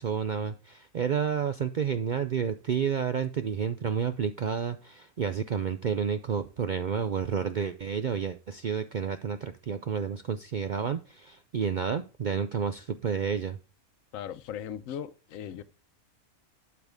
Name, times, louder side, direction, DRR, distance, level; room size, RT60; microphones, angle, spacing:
voice 1, 0.0-13.6, right 7 dB, 70° right, 0.4 m, -30 dB
voice 2, 14.1-15.6, left 9 dB, 75° left, 1.1 m, -38 dB
12.0 x 4.8 x 3.5 m
omnidirectional pair, 1.5 m